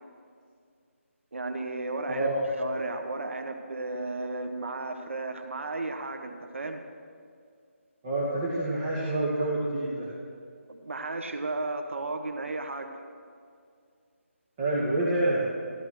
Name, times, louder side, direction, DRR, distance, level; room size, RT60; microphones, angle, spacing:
voice 1, 1.3-6.8 10.7-12.9, right 2 dB, 60° right, 5 dB, 1.5 m, -34 dB
voice 2, 2.1-2.4 8.0-10.1 14.6-15.5, right 1 dB, 20° right, -7 dB, 2.0 m, -27 dB
15.5 x 13.0 x 6.4 m, 2.3 s
figure-of-eight pair, 170°, 7 cm